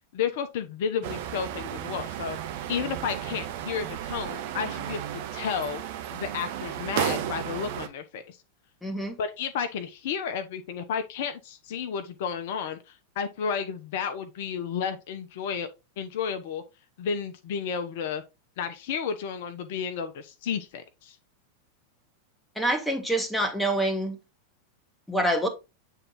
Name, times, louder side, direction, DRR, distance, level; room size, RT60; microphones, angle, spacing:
voice 1, 0.1-2.4 2.7-5.8 6.1-8.4 9.2-15.7 16.0-16.6 17.0-18.2 18.6-21.2, left 7 dB, 50° left, 0.7 m, -32 dB
sound 1, 1.0-7.9, right 11 dB, 50° right, 0.8 m, -33 dB
voice 2, 8.8-9.2 22.5-24.2 25.1-25.5, right 1 dB, ahead, 1.4 m, -26 dB
7.9 x 3.6 x 3.7 m
figure-of-eight pair, 90°, 0 cm